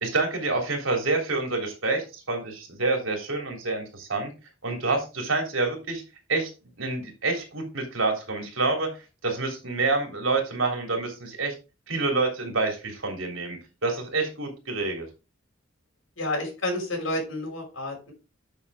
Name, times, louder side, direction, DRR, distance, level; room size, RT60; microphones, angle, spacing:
voice 1, 0.0-4.3 4.6-6.0 6.3-6.5 6.8-8.9 9.2-11.5 11.9-15.0, right 3 dB, 85° right, 2 dB, 3.3 m, -27 dB
voice 2, 16.2-18.1, left 1 dB, 85° left, 1 dB, 5.4 m, -30 dB
9.8 x 6.5 x 3.6 m, 0.30 s
head